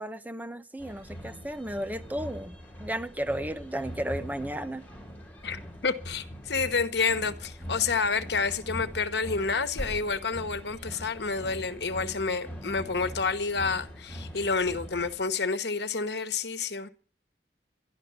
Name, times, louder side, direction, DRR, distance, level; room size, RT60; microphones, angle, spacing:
voice 1, 0.0-2.5 2.8-4.8, right 1 dB, 10° right, 0.6 m, -34 dB
sound 1, 0.8-15.2, equal, 10° left, 4.3 m, -42 dB
voice 2, 5.4-16.9, left 4 dB, 70° left, 1.2 m, -29 dB
12.0 x 11.5 x 7.0 m
head